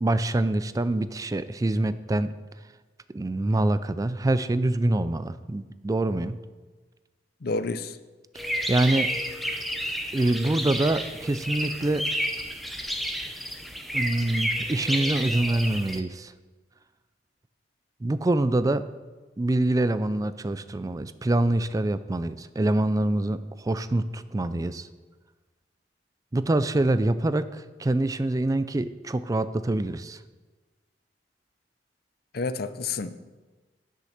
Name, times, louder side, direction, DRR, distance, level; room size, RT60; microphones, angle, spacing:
voice 1, 0.0-2.3 3.1-6.4 8.7-9.1 10.1-12.0 13.9-16.3 18.0-18.8 19.4-24.9 26.3-30.2, right 2 dB, 20° right, 13 dB, 0.4 m, -25 dB
voice 2, 7.4-7.9 32.3-33.2, left 3 dB, 60° left, 12 dB, 0.6 m, -29 dB
sound 1, 8.4-16.0, equal, ahead, 0.8 m, -31 dB
10.5 x 6.5 x 6.5 m, 1.3 s
head